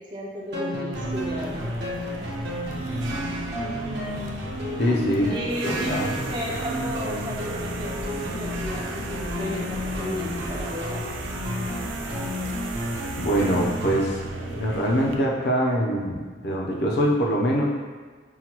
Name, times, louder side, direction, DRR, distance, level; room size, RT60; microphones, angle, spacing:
voice 1, 0.0-1.7 3.6-4.0 5.3-11.0, equal, 25° right, -3 dB, 0.5 m, -34 dB
sound 1, 0.5-14.2, left 1 dB, 60° right, 1.1 m, -32 dB
sound 2, 0.9-15.2, right 2 dB, 80° right, 0.4 m, -35 dB
voice 2, 4.8-5.3 5.6-6.0 13.2-14.2 14.4-17.7, equal, 60° left, -2 dB, 0.6 m, -23 dB
5.6 x 2.2 x 3.0 m, 1.4 s
head